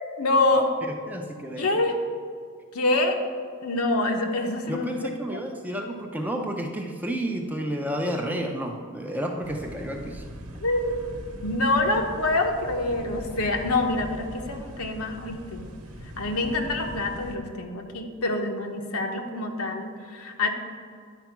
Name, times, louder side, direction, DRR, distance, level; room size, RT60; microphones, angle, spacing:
voice 1, 0.2-0.7 1.6-2.0 2.7-3.2 3.6-4.9 5.3-5.4 10.6-11.0 11.4-15.6 16.2-20.5, left 2 dB, 80° left, 3 dB, 1.0 m, -26 dB
voice 2, 1.1-1.8 4.7-10.2, right 1 dB, 5° right, 2 dB, 0.5 m, -31 dB
sound 1, 9.4-17.4, equal, 80° right, 1.0 m, -41 dB
10.0 x 4.6 x 5.9 m, 2.1 s
head